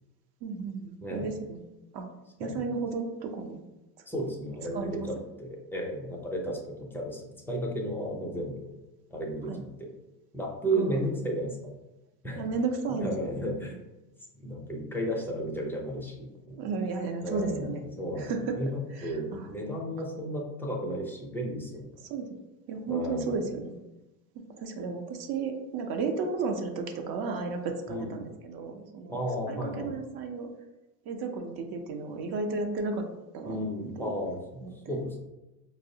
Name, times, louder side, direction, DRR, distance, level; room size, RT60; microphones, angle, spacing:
voice 1, 0.4-1.6 1.9-2.1 2.4-3.6 4.7-5.1 9.5-9.6 10.8-11.0 12.4-13.3 16.6-17.8 18.1-18.6 18.9-19.5 22.1-22.4 22.7-23.8 24.3-29.2 29.5-30.5 31.1-33.1 33.3-33.6 34.0-34.1 34.6-35.0, right 4 dB, 50° right, 4 dB, 0.6 m, -33 dB
voice 2, 4.1-8.7 9.1-9.9 10.3-11.6 12.2-12.5 13.0-13.7 14.4-16.6 17.2-17.7 18.0-21.9 22.9-23.4 27.9-28.1 29.1-30.0 33.4-34.6 34.9-35.2, equal, 5° left, -1 dB, 0.4 m, -33 dB
4.5 x 2.0 x 2.7 m, 1.0 s
supercardioid pair, 95°, 49 cm